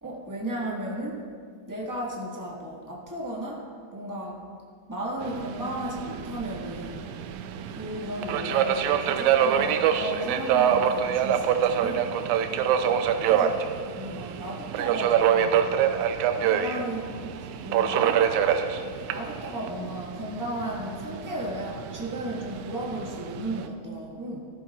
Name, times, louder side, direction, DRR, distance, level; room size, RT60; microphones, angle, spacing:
voice 1, 0.0-1.2 1.7-4.4 4.9-7.1 7.7-12.1 13.3-13.6 13.9-15.6 16.4-18.2 19.1-24.4, right 1 dB, 15° right, -4 dB, 0.7 m, -35 dB
Subway metro underground, 5.2-23.7, right 8 dB, 90° right, 2.0 m, -26 dB
14.5 x 13.0 x 2.4 m, 2.1 s
omnidirectional pair, 3.3 m